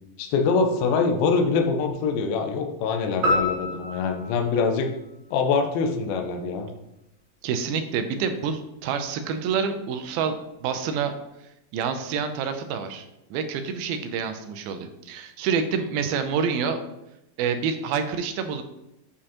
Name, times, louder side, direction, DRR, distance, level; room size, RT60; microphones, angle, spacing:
voice 1, 0.2-4.9 5.3-6.7, left 4 dB, 80° left, 4 dB, 2.4 m, -24 dB
sound 1, 3.2-5.7, left 1 dB, 60° right, 2.3 m, -28 dB
voice 2, 7.4-11.1 11.7-13.1 13.3-16.8 17.4-18.6, right 6 dB, 80° right, 7 dB, 2.3 m, -27 dB
8.3 x 4.9 x 2.9 m, 0.88 s
omnidirectional pair, 4.5 m